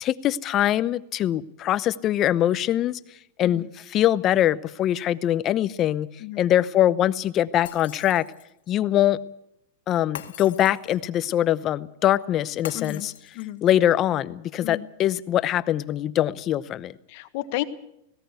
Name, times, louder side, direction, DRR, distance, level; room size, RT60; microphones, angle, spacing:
voice 1, 0.0-3.0 3.4-6.1 6.4-8.2 8.7-9.2 9.9-13.1 13.6-16.9, left 12 dB, 30° left, 15 dB, 0.8 m, -23 dB
Shatter, 7.7-8.6 10.2-11.1 12.7-13.7, left 11 dB, 85° left, 1.9 m, -41 dB
voice 2, 12.7-13.1 13.3-13.6 14.6-14.9 17.1-17.6, left 16 dB, 55° left, 10 dB, 1.4 m, -32 dB
18.5 x 17.5 x 8.1 m, 0.79 s
supercardioid pair, 140°, 0 cm